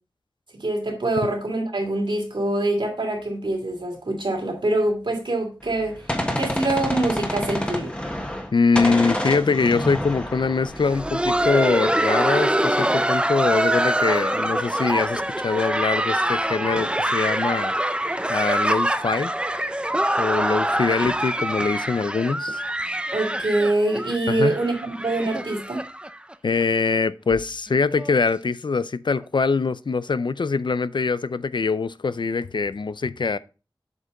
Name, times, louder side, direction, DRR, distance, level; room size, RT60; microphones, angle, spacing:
voice 1, 0.5-6.0 6.4-7.9 23.1-25.8, right 2 dB, 70° right, 2.6 m, -24 dB
Gunshot gunfire, 5.6-8.5 8.8-11.5, left 1 dB, 15° left, 1.5 m, -28 dB
voice 2, 8.5-17.7 18.3-19.3 20.2-22.6 24.3-24.6 26.4-33.4, left 4 dB, 65° left, 0.4 m, -23 dB
Laughter, 10.6-26.3 26.6-26.7 27.3-27.4 27.9-28.2 29.2-29.3, right 1 dB, 10° right, 0.5 m, -24 dB
8.0 x 5.2 x 3.8 m
wide cardioid pair, 65°, 9 cm